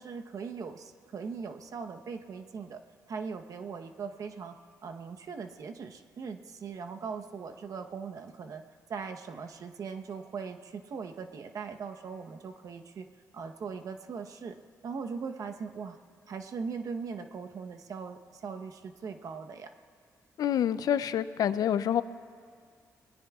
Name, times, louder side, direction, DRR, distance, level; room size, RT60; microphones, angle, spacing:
voice 1, 0.0-4.6 4.8-8.6 8.9-13.1 13.3-14.6 14.8-16.0 16.3-19.7, right 5 dB, 60° right, 5 dB, 1.0 m, -40 dB
voice 2, 20.4-22.0, left 9 dB, 75° left, 14 dB, 0.5 m, -27 dB
28.0 x 20.5 x 2.4 m, 2.1 s
cardioid pair, 75°, 6 cm